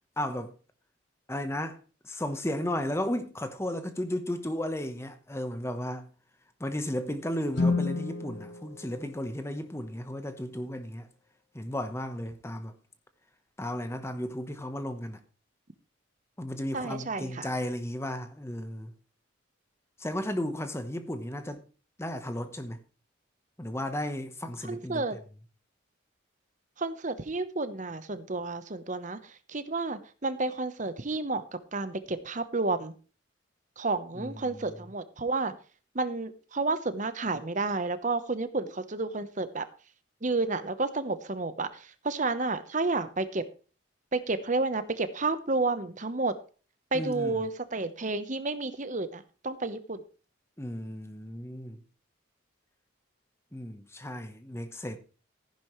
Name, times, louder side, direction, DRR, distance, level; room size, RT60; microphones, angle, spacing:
voice 1, 0.2-0.5 1.3-1.8 2.0-6.0 6.6-11.1 11.5-12.7 13.6-15.2 16.4-18.9 20.0-21.6 22.0-22.8 23.6-25.0 34.2-34.8 46.9-47.4 50.6-51.8 53.5-55.0, left 1 dB, 15° left, 1.0 m, -34 dB
Guitar, 7.5-10.1, left 3 dB, 55° left, 1.3 m, -32 dB
voice 2, 16.7-17.5 24.6-25.2 26.8-31.4 31.7-32.9 33.8-35.5 35.9-39.7 40.2-43.5 44.1-46.3 46.9-50.0, right 3 dB, 40° right, 1.0 m, -31 dB
14.5 x 10.5 x 3.2 m
head